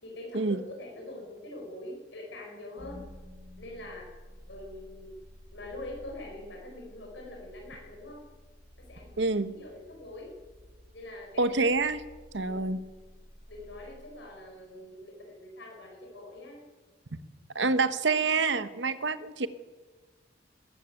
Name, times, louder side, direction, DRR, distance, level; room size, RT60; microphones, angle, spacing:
voice 1, 0.0-3.0 3.6-4.1 4.5-5.2 5.5-8.3 8.8-10.4 10.9-11.6 12.3-12.6 13.5-16.7, left 1 dB, 70° left, 0 dB, 5.2 m, -44 dB
sound 1, 2.8-14.9, equal, 40° right, 4.9 m, -52 dB
voice 2, 9.2-9.5 11.4-12.0 12.3-12.8 17.5-19.5, right 3 dB, 70° right, 13 dB, 1.1 m, -27 dB
20.0 x 14.0 x 9.1 m, 1.3 s
head